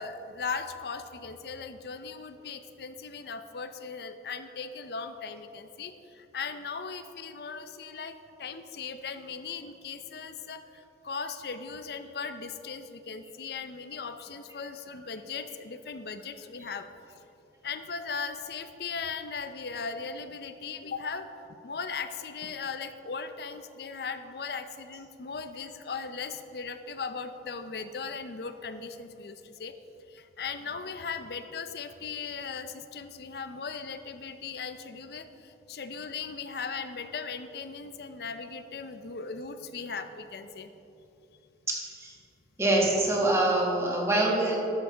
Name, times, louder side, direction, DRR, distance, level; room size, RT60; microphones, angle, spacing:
voice 1, 0.0-8.1 8.4-16.9 17.6-29.8 30.1-40.7, left 5 dB, 60° left, 10 dB, 0.5 m, -38 dB
voice 2, 41.7-42.2 42.6-44.6, right 2 dB, 15° right, -2 dB, 1.4 m, -25 dB
11.5 x 7.4 x 3.9 m, 2.9 s
head